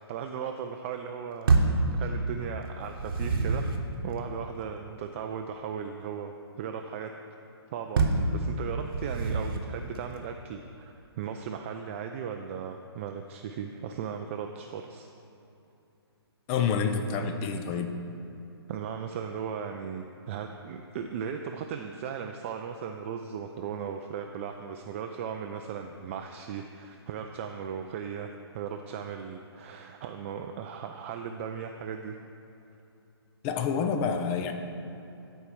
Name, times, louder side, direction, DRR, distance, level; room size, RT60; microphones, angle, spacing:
voice 1, 0.0-1.5 1.9-3.7 4.0-6.3 6.6-7.1 7.7-15.1 18.7-32.2, right 7 dB, 30° right, 5 dB, 0.3 m, -37 dB
sound 1, 1.5-1.9 2.8-3.8 8.0-8.3 8.9-9.7, right 4 dB, 55° right, 1.0 m, -25 dB
voice 2, 16.5-17.9 33.4-34.5, left 6 dB, 25° left, 6 dB, 0.6 m, -28 dB
12.5 x 4.5 x 4.7 m, 2.8 s
figure-of-eight pair, 135°, 14 cm